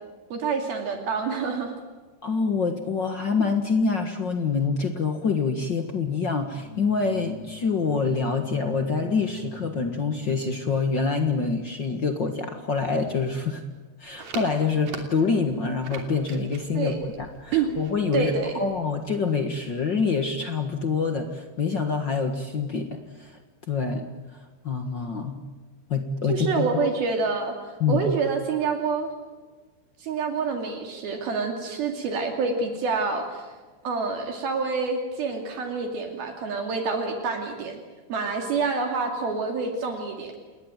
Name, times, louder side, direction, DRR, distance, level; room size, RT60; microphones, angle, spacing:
voice 1, 0.3-1.7 16.8-17.0 17.5-17.7 18.1-18.5 26.3-27.6 27.9-29.1 30.0-33.5 33.8-37.8 38.1-40.3, right 4 dB, 65° right, 4 dB, 4.2 m, -27 dB
voice 2, 2.2-13.6 14.0-23.4 23.7-24.1 24.6-25.4 25.9-26.8 27.8-28.0, left 4 dB, 70° left, 5 dB, 1.0 m, -26 dB
sound 1, 6.4-11.2, left 1 dB, 20° right, 6.1 m, -43 dB
sound 2, 14.0-19.1, right 4 dB, 45° right, 4.0 m, -42 dB
29.0 x 20.5 x 9.0 m, 1.3 s
omnidirectional pair, 4.8 m